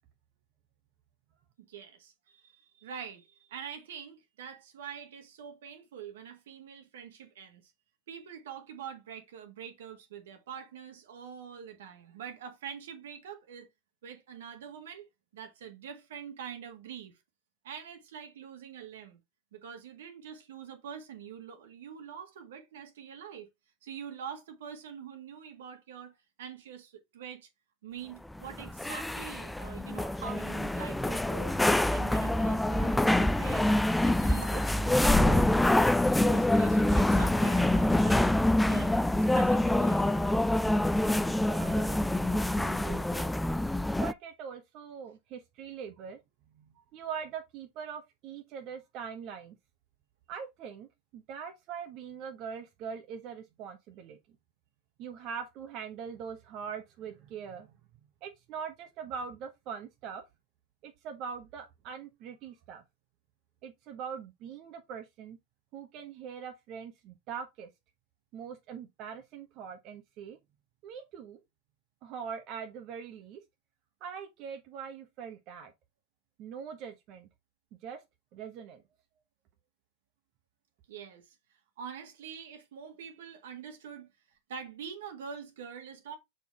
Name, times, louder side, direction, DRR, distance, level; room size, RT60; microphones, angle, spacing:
voice 1, 1.6-7.7 8.1-13.7 14.0-15.1 15.3-17.1 17.6-19.2 19.5-23.5 23.8-27.5 27.8-31.6 31.9-33.7 34.0-35.9 36.2-38.3 38.6-38.9 39.3-40.2 80.9-81.3 81.8-84.1 84.5-86.2, right 7 dB, 70° right, 1.7 m, -45 dB
sound 1, 28.3-44.1, left 1 dB, 5° left, 0.4 m, -26 dB
voice 2, 41.3-43.3 43.9-46.2 46.5-49.6 50.3-54.2 55.0-57.7 58.2-60.2 60.8-62.8 63.6-65.4 65.7-67.7 68.3-70.4 70.8-71.4 72.0-73.4 74.0-75.7 76.4-77.3 77.7-78.0 78.3-78.8, right 7 dB, 45° right, 1.1 m, -42 dB
6.8 x 4.4 x 3.4 m
hypercardioid pair, 90°, 0 cm